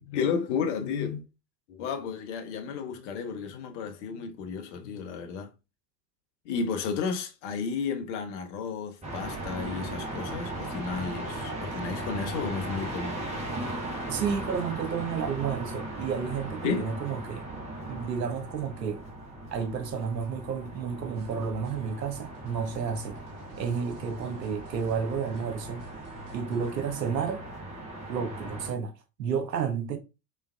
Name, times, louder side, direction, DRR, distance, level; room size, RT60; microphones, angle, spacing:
voice 1, 0.1-1.2 1.7-5.5 6.4-13.3 16.6-17.0, left 6 dB, 45° left, 0.7 m, -32 dB
sound 1, 9.0-28.7, right 1 dB, 15° right, 1.0 m, -38 dB
voice 2, 14.1-17.5 17.9-19.0 19.5-23.2 23.6-25.9 26.3-27.4 28.1-28.9 29.2-30.0, right 6 dB, 80° right, 0.7 m, -31 dB
sound 2, 21.1-26.7, right 1 dB, 40° right, 1.0 m, -54 dB
3.3 x 3.1 x 2.2 m
figure-of-eight pair, 80°, 49 cm